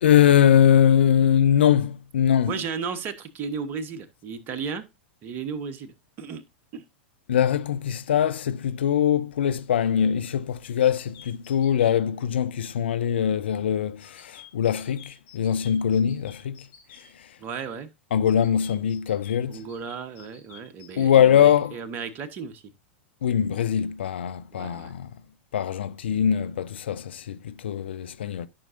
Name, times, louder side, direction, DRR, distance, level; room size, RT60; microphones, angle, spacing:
voice 1, 0.0-2.5 7.3-16.6 16.9-17.3 18.1-19.6 21.0-21.8 23.2-25.1 25.5-28.5, left 9 dB, 65° left, 0.6 m, -22 dB
voice 2, 2.5-4.8 5.2-5.9 6.2-6.4 6.7-6.8 17.4-17.9 19.5-22.6 24.5-24.9, right 6 dB, 35° right, 1.3 m, -34 dB
sound 1, 10.6-11.9 14.0-17.1 18.2-21.3, left 9 dB, 45° left, 3.7 m, -50 dB
12.5 x 6.1 x 2.6 m
figure-of-eight pair, 90°, 6 cm